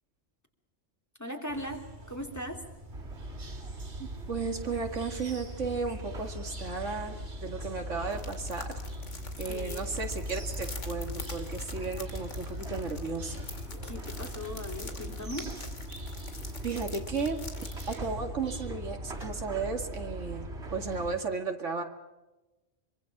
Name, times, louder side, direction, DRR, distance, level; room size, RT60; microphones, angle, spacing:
voice 1, 1.2-2.6 9.4-10.0 13.8-15.5, left 1 dB, 15° left, 3 dB, 3.0 m, -39 dB
sound 1, 1.5-19.0, right 1 dB, 40° right, 2.0 m, -48 dB
sound 2, 2.9-21.2, equal, 70° right, 3.8 m, -40 dB
voice 2, 4.0-8.8 9.4-13.5 16.6-17.4 17.9-21.8, right 4 dB, 85° right, 5 dB, 2.5 m, -34 dB
sound 3, 8.1-17.9, left 3 dB, 80° left, 2.7 m, -46 dB
25.0 x 24.0 x 6.0 m, 1.0 s
omnidirectional pair, 1.2 m